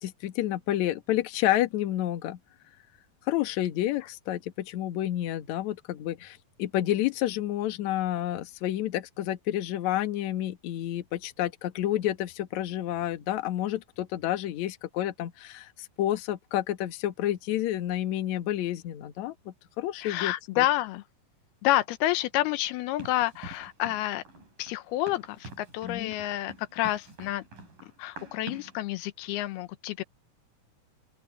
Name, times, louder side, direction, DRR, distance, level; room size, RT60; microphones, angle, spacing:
voice 1, 0.0-2.4 3.3-20.6 25.8-26.1, left 13 dB, 60° left, 2.3 m, -30 dB
voice 2, 20.0-21.0 21.6-24.2 24.6-27.4 28.0-30.0, left 15 dB, 85° left, 2.7 m, -29 dB
Run, 23.0-28.8, right 2 dB, 55° right, 9.2 m, -46 dB
open air
omnidirectional pair, 4.5 m